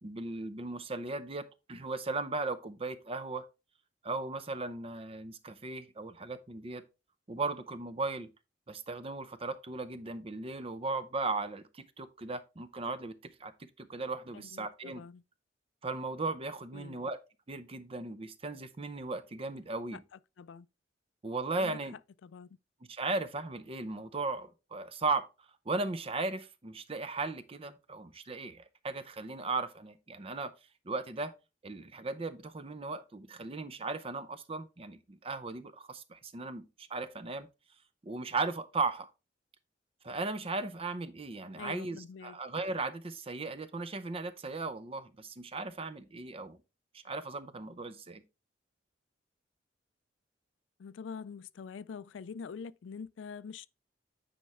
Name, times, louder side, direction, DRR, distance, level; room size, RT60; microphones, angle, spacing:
voice 1, 0.0-3.5 4.0-6.8 7.3-8.3 8.7-15.0 15.8-17.2 17.5-20.0 21.2-21.9 22.9-25.3 25.7-30.5 30.8-31.3 31.6-37.5 38.0-39.1 40.0-46.6 47.0-48.2, right 3 dB, 30° right, 0.6 m, -37 dB
voice 2, 14.3-15.2 16.7-17.0 20.4-20.7 21.6-21.8 22.2-22.6 41.6-42.4 50.8-53.7, left 6 dB, 85° left, 0.4 m, -45 dB
9.3 x 4.3 x 3.5 m
head